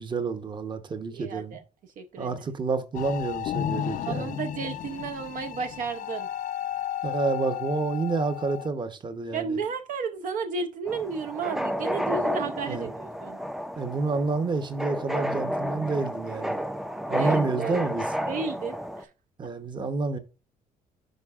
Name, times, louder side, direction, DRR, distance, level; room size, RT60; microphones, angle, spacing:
voice 1, 0.0-1.6 2.2-4.4 7.0-9.6 12.6-12.9 13.8-16.6 17.1-18.1 19.4-20.2, right 4 dB, 30° right, 0.9 m, -29 dB
voice 2, 1.1-1.6 2.0-2.3 4.1-6.3 9.3-13.4 17.2-17.8 18.3-19.1, right 5 dB, 65° right, 0.6 m, -33 dB
sound 1, 2.9-8.7, left 11 dB, 60° left, 0.5 m, -33 dB
sound 2, 10.9-19.0, equal, ahead, 0.4 m, -31 dB
10.5 x 4.2 x 2.4 m
cardioid pair, 105°, 15 cm